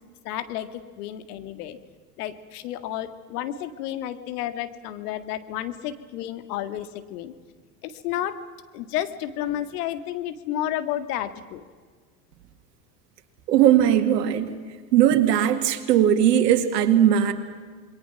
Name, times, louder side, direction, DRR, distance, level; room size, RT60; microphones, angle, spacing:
voice 1, 0.2-1.8 2.2-7.3 7.8-8.4 8.7-11.6, left 12 dB, 65° left, 10 dB, 2.0 m, -31 dB
voice 2, 13.5-14.5 14.9-17.3, right 10 dB, 75° right, 6 dB, 2.3 m, -19 dB
27.5 x 22.0 x 6.0 m, 1.5 s
hypercardioid pair, 85°, 48 cm